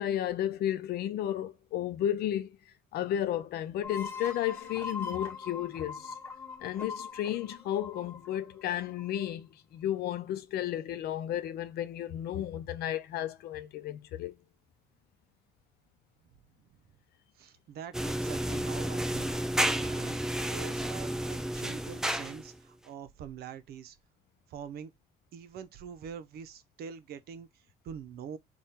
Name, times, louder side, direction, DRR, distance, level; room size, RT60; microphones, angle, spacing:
voice 1, 0.0-2.6 2.9-6.1 6.6-14.4, left 11 dB, 70° left, 0.6 m, -33 dB
sound 1, 3.8-9.3, left 5 dB, 15° left, 1.3 m, -41 dB
voice 2, 17.3-19.4 19.7-24.0 24.5-24.9 25.3-28.4, right 7 dB, 70° right, 0.7 m, -45 dB
sound 2, 17.9-22.6, right 1 dB, 5° right, 0.4 m, -31 dB
3.5 x 2.4 x 4.3 m
cardioid pair, 110°, 17 cm